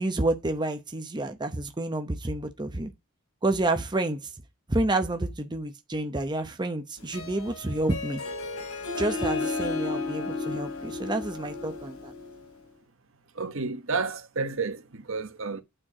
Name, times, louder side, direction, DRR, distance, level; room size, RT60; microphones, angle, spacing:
voice 1, 0.0-2.9 3.4-4.2 4.7-8.2 9.0-12.1, right 2 dB, 20° right, 0.8 m, -29 dB
Harp, 7.0-12.5, left 3 dB, 75° left, 3.0 m, -33 dB
voice 2, 13.4-15.6, right 4 dB, 65° right, 1.2 m, -31 dB
8.9 x 4.6 x 4.8 m
head